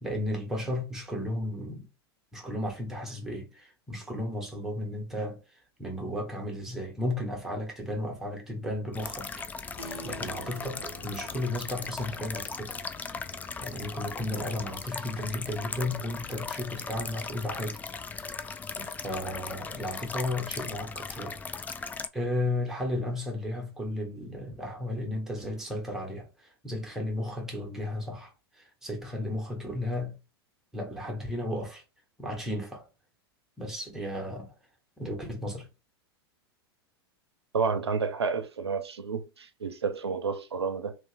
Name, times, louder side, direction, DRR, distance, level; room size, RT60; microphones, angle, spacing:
voice 1, 0.0-1.9 2.3-5.4 5.8-9.4 10.0-12.8 13.6-17.8 18.1-18.3 18.8-21.4 21.7-21.9 22.1-30.2 30.7-31.8 32.2-32.8 33.6-34.5 35.0-35.7, left 1 dB, 5° right, 1.4 m, -34 dB
water-spout-japanese-garden-botanical-gardens, 8.9-22.1, left 5 dB, 10° left, 0.3 m, -38 dB
Keyboard (musical), 9.8-15.8, right 1 dB, 90° left, 1.1 m, -49 dB
voice 2, 37.5-41.0, right 5 dB, 80° right, 0.6 m, -30 dB
3.0 x 2.8 x 3.4 m
figure-of-eight pair, 95°, 13 cm